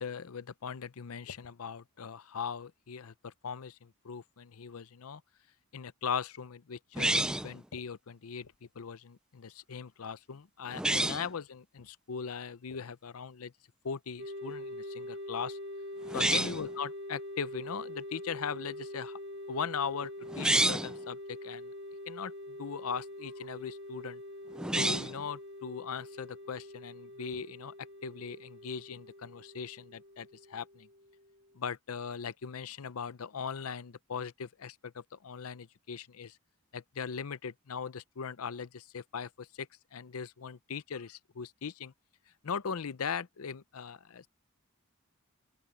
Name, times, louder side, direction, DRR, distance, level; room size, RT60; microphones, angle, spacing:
voice 1, 0.0-5.2 5.7-13.5 13.8-15.6 16.1-19.2 19.5-21.7 22.1-24.2 24.8-27.7 28.0-30.9 31.5-36.4 36.7-41.9 42.4-44.3, left 6 dB, 85° left, 0.6 m, -39 dB
sound 1, 7.0-7.6 10.7-11.3 16.1-16.7 20.3-21.0 24.6-25.2, right 1 dB, 5° right, 0.3 m, -29 dB
sound 2, 14.2-31.6, left 1 dB, 50° right, 2.7 m, -44 dB
open air
head